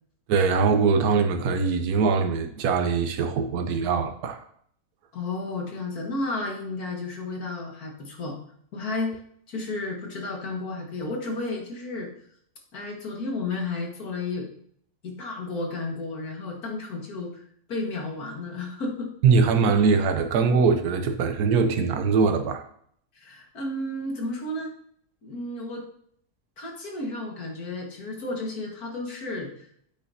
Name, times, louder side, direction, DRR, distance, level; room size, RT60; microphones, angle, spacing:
voice 1, 0.3-4.4 19.2-22.6, right 5 dB, 80° right, 7 dB, 1.3 m, -22 dB
voice 2, 5.1-8.4 8.7-9.2 9.5-12.1 12.7-14.5 15.0-17.4 17.7-19.1 23.2-24.7 25.2-25.9 26.6-29.7, left 2 dB, 75° left, 0 dB, 2.3 m, -32 dB
8.8 x 8.2 x 2.8 m, 0.64 s
omnidirectional pair, 1.6 m